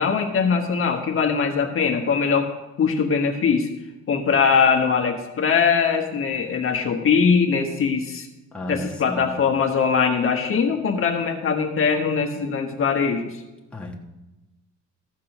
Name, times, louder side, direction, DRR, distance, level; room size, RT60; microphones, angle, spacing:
voice 1, 0.0-2.5 2.8-3.7 4.1-8.3 8.7-13.4, left 6 dB, 45° left, 2 dB, 1.3 m, -21 dB
voice 2, 8.5-9.4 13.7-14.0, left 1 dB, 5° left, -3 dB, 1.4 m, -33 dB
14.5 x 6.0 x 5.9 m, 1.0 s
cardioid pair, 135°, 30 cm